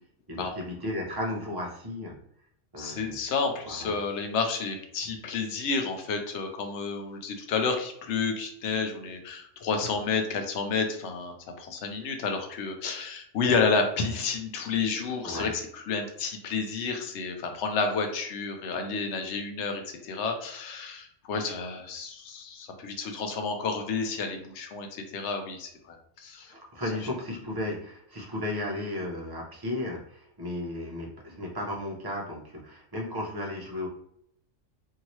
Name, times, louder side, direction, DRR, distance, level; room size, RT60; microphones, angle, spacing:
voice 1, 0.3-2.1 2.7-3.2 3.6-3.9 15.2-15.5 26.5-33.9, left 1 dB, 25° right, -2 dB, 0.6 m, -34 dB
voice 2, 2.8-26.5, left 4 dB, 70° left, 5 dB, 0.9 m, -30 dB
2.8 x 2.7 x 2.9 m, 0.71 s
omnidirectional pair, 1.3 m